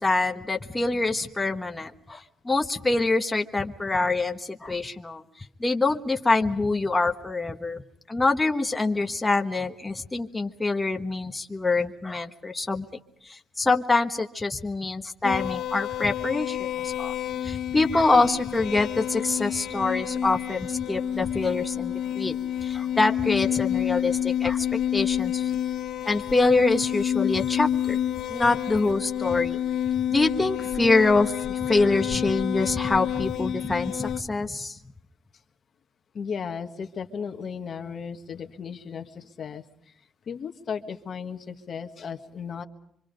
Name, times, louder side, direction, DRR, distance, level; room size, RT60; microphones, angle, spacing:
voice 1, 0.0-7.8 8.1-12.8 13.2-17.1 17.4-22.3 22.6-24.7 24.9-25.5 26.0-28.0 28.3-29.6 30.1-34.8, left 3 dB, 15° left, 4 dB, 1.3 m, -25 dB
sound 1, 15.2-34.2, left 10 dB, 75° left, 1.3 m, -29 dB
Wind instrument woodwind instrument, 18.5-24.6, right 1 dB, 50° right, 3.3 m, -53 dB
voice 2, 36.1-39.9 40.3-42.7, left 6 dB, 55° left, 6 dB, 1.5 m, -35 dB
25.5 x 25.0 x 5.2 m, 0.72 s
cardioid pair, 90°, 0 cm